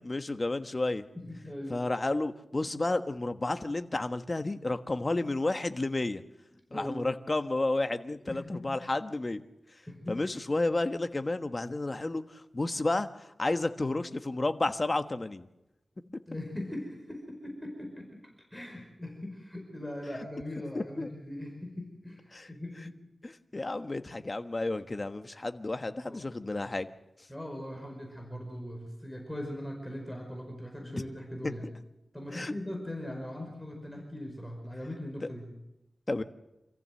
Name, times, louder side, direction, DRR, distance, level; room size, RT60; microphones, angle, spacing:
voice 1, 0.0-1.0 1.7-6.2 6.7-9.4 10.1-13.1 13.4-15.5 20.7-21.1 22.3-22.5 23.2-26.9 30.9-31.0 31.4-31.5 32.3-32.5 36.1-36.2, left 2 dB, 35° left, 8 dB, 1.3 m, -31 dB
voice 2, 1.1-1.8 6.7-7.1 8.2-8.8 9.9-10.3 16.0-18.1 18.5-23.1 23.5-23.7 26.0-26.3 27.3-31.7 32.1-35.5, left 1 dB, 5° left, 1 dB, 5.1 m, -40 dB
27.0 x 15.0 x 7.8 m, 0.95 s
wide cardioid pair, 75°, 0 cm